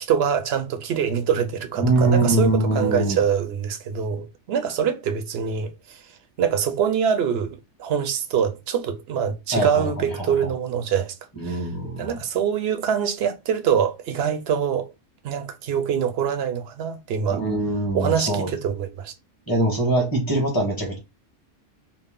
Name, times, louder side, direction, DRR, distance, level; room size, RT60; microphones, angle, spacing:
voice 1, 0.0-6.1 6.4-11.1 11.4-11.6 12.0-14.9 15.2-17.4 17.9-19.1, right 7 dB, 65° right, 0.8 m, -24 dB
voice 2, 1.8-3.2 9.5-10.3 11.4-12.1 17.3-18.6 19.5-21.0, right 2 dB, 15° left, 1.5 m, -23 dB
4.0 x 2.1 x 3.6 m
omnidirectional pair, 1.3 m